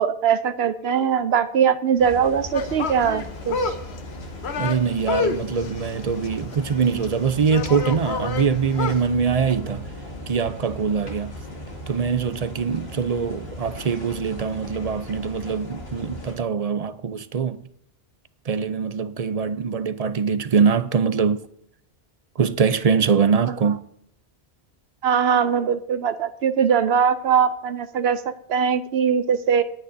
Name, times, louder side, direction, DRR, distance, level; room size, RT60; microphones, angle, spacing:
voice 1, 0.0-3.8 25.0-28.2 28.5-29.6, right 7 dB, 75° right, 0.9 m, -21 dB
sound 1, 2.0-16.4, left 1 dB, 70° left, 2.6 m, -37 dB
sound 2, 2.5-9.1, left 4 dB, 90° left, 1.2 m, -29 dB
voice 2, 4.6-9.8 10.3-11.3 11.9-17.6 18.5-21.4 22.4-23.8, right 6 dB, 45° right, 0.6 m, -23 dB
19.5 x 9.1 x 2.7 m
omnidirectional pair, 1.1 m